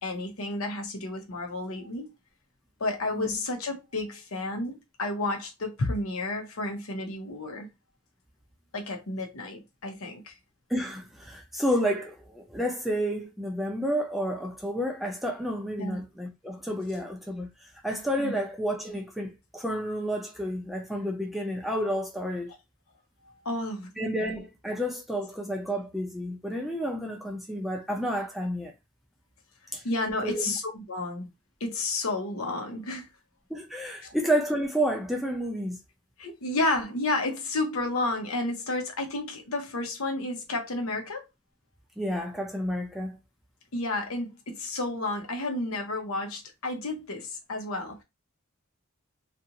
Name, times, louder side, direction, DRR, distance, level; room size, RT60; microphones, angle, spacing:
voice 1, 0.0-2.1 2.8-7.7 8.7-10.3 15.8-16.0 18.2-18.3 23.4-23.9 29.8-31.3 31.6-33.1 34.0-34.1 36.2-41.2 43.7-48.0, left 2 dB, 80° left, 0.8 m, -31 dB
voice 2, 3.1-3.4 10.7-22.5 24.0-28.7 29.7-29.8 30.2-30.5 33.5-35.8 42.0-43.2, equal, ahead, 0.5 m, -30 dB
2.5 x 2.5 x 2.8 m
head